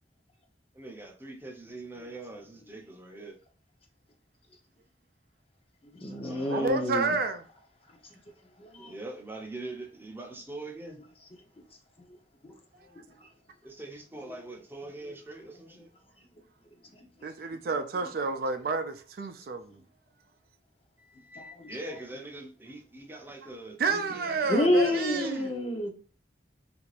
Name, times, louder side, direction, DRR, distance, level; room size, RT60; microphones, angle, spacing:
voice 1, 0.7-3.4 6.2-6.8 8.8-11.0 13.6-15.9 21.0-25.5, right 2 dB, 15° right, 0.6 m, -43 dB
voice 2, 5.9-7.2 8.6-8.9 12.4-12.6 12.9-13.3 14.3-14.4 17.0-17.1 17.6-17.7 21.4-21.7 23.8-24.0 24.5-25.9, left 1 dB, 35° left, 0.7 m, -29 dB
voice 3, 6.5-7.4 17.2-19.8 23.8-25.5, right 4 dB, 55° right, 0.4 m, -30 dB
3.3 x 2.5 x 3.2 m
head